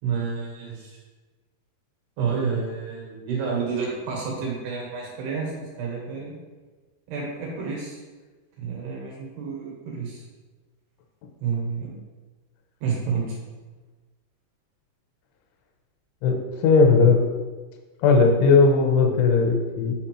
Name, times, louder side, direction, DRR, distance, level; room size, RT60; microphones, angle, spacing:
voice 1, 0.0-1.0 2.2-6.4 7.1-8.0 8.6-10.2 11.4-11.9 12.8-13.4, right 5 dB, 70° right, -3 dB, 3.0 m, -29 dB
voice 2, 16.2-17.2 18.0-19.9, left 4 dB, 80° left, 2 dB, 3.0 m, -18 dB
6.7 x 5.2 x 2.9 m, 1.3 s
omnidirectional pair, 5.4 m